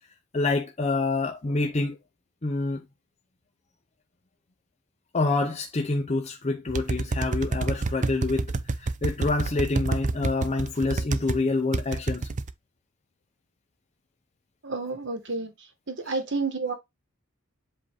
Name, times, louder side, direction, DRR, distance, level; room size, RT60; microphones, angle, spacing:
voice 1, 0.3-2.0 2.4-2.8 5.1-8.5 8.8-12.3, left 3 dB, 30° left, 0.7 m, -27 dB
sound 1, 6.7-11.4 11.7-12.5, right 3 dB, 35° right, 0.5 m, -28 dB
voice 2, 14.6-15.5 15.9-16.7, right 3 dB, 60° right, 1.5 m, -30 dB
7.8 x 2.7 x 4.6 m
head